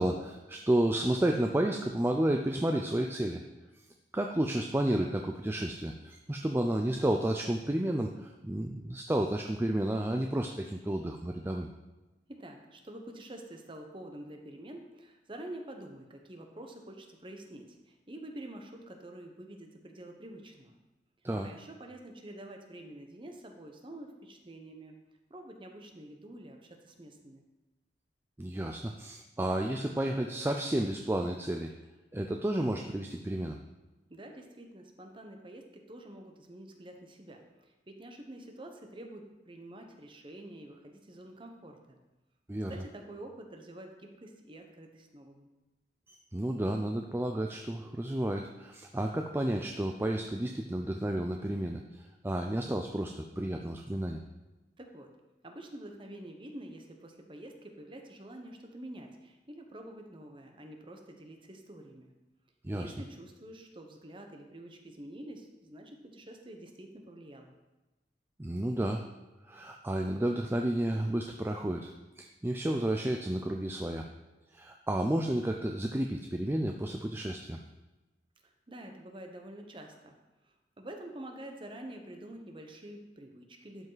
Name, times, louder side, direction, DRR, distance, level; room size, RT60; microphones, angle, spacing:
voice 1, 0.0-3.4 4.1-11.7 21.2-21.5 28.4-31.7 32.1-33.6 42.5-42.7 46.1-51.8 52.2-54.2 62.6-62.9 68.4-69.0 69.5-71.9 72.2-74.1 74.5-77.6, right 1 dB, 15° right, 3 dB, 0.4 m, -31 dB
voice 2, 12.3-20.8 21.4-24.9 25.3-27.4 34.1-42.0 42.7-45.5 54.8-55.1 55.4-62.1 62.7-67.5 78.4-80.1 80.4-83.9, right 1 dB, 30° right, 3 dB, 1.0 m, -47 dB
12.0 x 5.4 x 4.0 m, 1.1 s
head